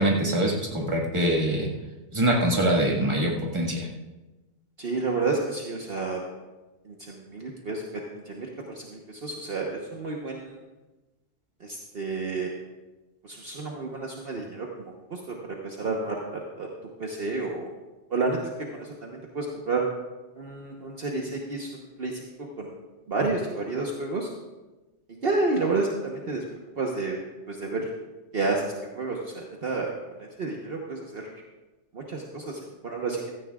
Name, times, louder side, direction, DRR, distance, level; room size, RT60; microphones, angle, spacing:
voice 1, 0.0-1.7 2.1-3.9, right 1 dB, 25° right, -2 dB, 1.8 m, -24 dB
voice 2, 4.8-6.2 6.8-7.8 8.1-10.6 11.6-12.5 13.2-15.2 15.6-16.7 17.0-17.7 18.1-19.8 20.3-22.3 22.6-22.7 23.1-24.3 25.2-26.4 26.8-27.2 27.5-27.9 28.3-29.9 30.2-31.3 31.9-33.3, right 3 dB, 55° right, -1 dB, 1.3 m, -30 dB
16.0 x 14.0 x 2.4 m, 1.1 s
omnidirectional pair, 1.2 m